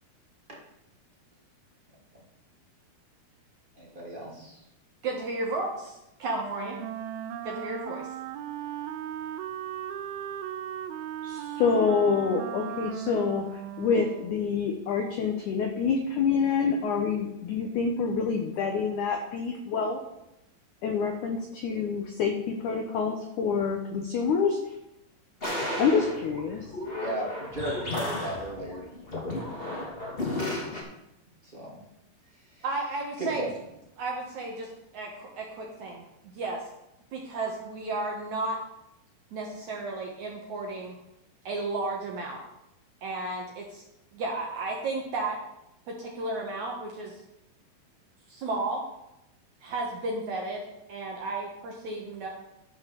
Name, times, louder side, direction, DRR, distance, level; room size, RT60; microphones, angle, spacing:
voice 1, 3.8-4.6 26.5-26.6 27.0-28.8 29.2-30.1 31.4-31.8 32.3-32.6 33.2-33.5, right 1 dB, 15° right, -4 dB, 2.2 m, -36 dB
voice 2, 5.0-5.7 6.2-6.8 7.4-8.1 32.6-33.4 34.0-36.6 37.1-38.6 39.3-40.9 41.5-42.4 43.0-43.8 44.1-45.4 45.9-47.2 48.3-48.8 49.6-52.3, right 2 dB, 60° right, -1 dB, 2.2 m, -33 dB
Wind instrument woodwind instrument, 6.3-14.6, right 10 dB, 80° right, 2.4 m, -37 dB
voice 3, 11.2-20.0 20.8-24.6 25.8-26.7, left 5 dB, 75° left, 4 dB, 1.8 m, -27 dB
sound 1, 25.4-30.8, left 1 dB, 15° left, 2.1 m, -33 dB
12.5 x 5.7 x 7.0 m, 0.86 s
omnidirectional pair, 4.8 m